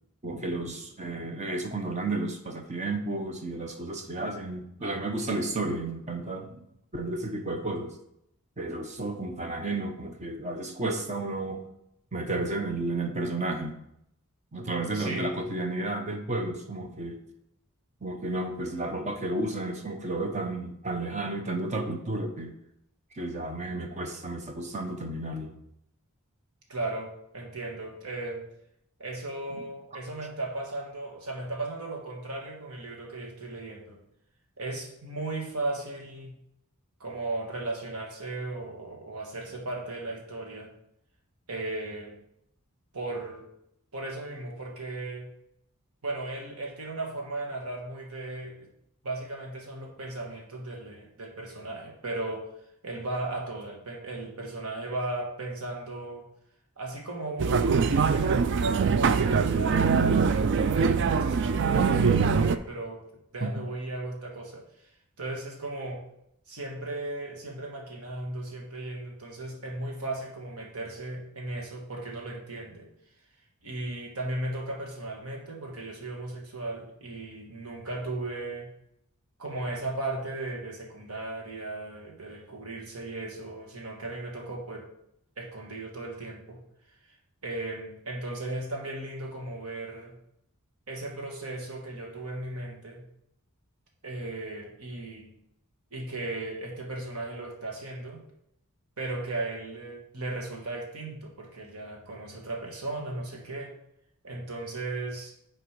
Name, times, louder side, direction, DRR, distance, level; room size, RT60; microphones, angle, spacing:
voice 1, 0.2-6.6 6.9-7.9 8.6-11.6 12.1-13.8 14.5-17.2 18.0-22.5 23.1-25.5 63.4-63.5, right 2 dB, 30° right, 5 dB, 0.8 m, -32 dB
voice 2, 14.9-15.3 26.7-28.4 29.0-34.0 34.6-36.3 37.0-40.7 41.5-42.2 42.9-43.5 43.9-45.3 46.0-48.7 49.0-52.5 52.8-56.3 56.8-63.0 63.3-64.9 65.2-66.0 66.5-72.9 73.6-78.7 79.4-84.9 85.4-86.6 87.4-90.2 90.9-93.0 94.0-95.3 95.9-98.2 99.0-103.7 104.2-105.3, right 2 dB, 80° right, 0 dB, 1.5 m, -36 dB
sound 1, 57.4-62.6, right 5 dB, 50° right, 0.3 m, -23 dB
6.5 x 4.3 x 4.7 m, 0.76 s
head